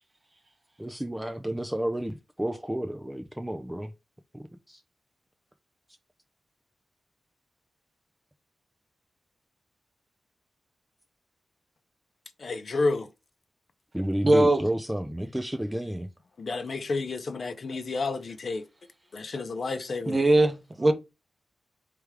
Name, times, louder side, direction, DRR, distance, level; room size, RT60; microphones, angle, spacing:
voice 1, 0.8-3.9 4.3-4.8 13.9-16.1, right 1 dB, 5° right, 0.4 m, -31 dB
voice 2, 12.4-13.1 16.4-18.6 19.1-20.2, left 3 dB, 50° left, 0.6 m, -30 dB
voice 3, 14.2-14.6 20.1-20.9, right 2 dB, 25° right, 0.7 m, -20 dB
3.4 x 3.3 x 4.7 m
wide cardioid pair, 120°, 0 cm